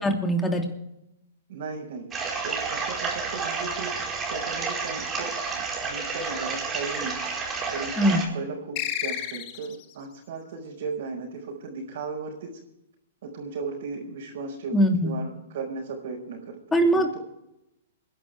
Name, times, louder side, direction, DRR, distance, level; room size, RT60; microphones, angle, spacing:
voice 1, 0.0-0.6 8.0-8.2 14.7-15.1 16.7-17.1, equal, 10° left, 2 dB, 2.8 m, -21 dB
voice 2, 1.5-2.1 2.4-7.2 7.7-12.6 13.2-14.8 15.0-16.6 16.9-17.2, right 4 dB, 60° right, -4 dB, 5.0 m, -36 dB
sound 1, 2.1-8.3, right 4 dB, 20° right, 4.5 m, -30 dB
sound 2, 8.8-9.9, left 11 dB, 45° left, 1.7 m, -31 dB
27.5 x 11.0 x 3.4 m, 0.88 s
hypercardioid pair, 125°, 0 cm